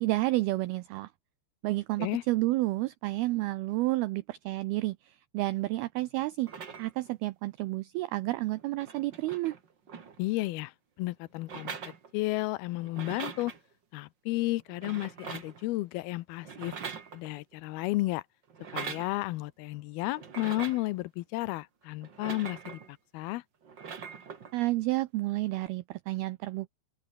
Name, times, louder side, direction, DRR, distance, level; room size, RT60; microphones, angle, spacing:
voice 1, 0.0-1.1 1.6-6.5 6.8-9.6 24.5-26.7, right 18 dB, 90° right, 2.2 m, -30 dB
sound 1, 6.4-7.1 8.2-8.3 8.5-10.5 11.4-12.5 12.8-13.6 14.7-15.6 16.4-17.5 18.5-19.1 20.2-20.9 22.0-22.9 23.6-24.5 25.5-25.7, right 6 dB, 45° right, 1.5 m, -42 dB
voice 2, 10.2-10.7 11.0-11.8 12.1-13.5 13.9-16.7 17.1-18.2 18.7-22.8 23.1-23.4, left 19 dB, 80° left, 2.2 m, -32 dB
open air
omnidirectional pair, 5.3 m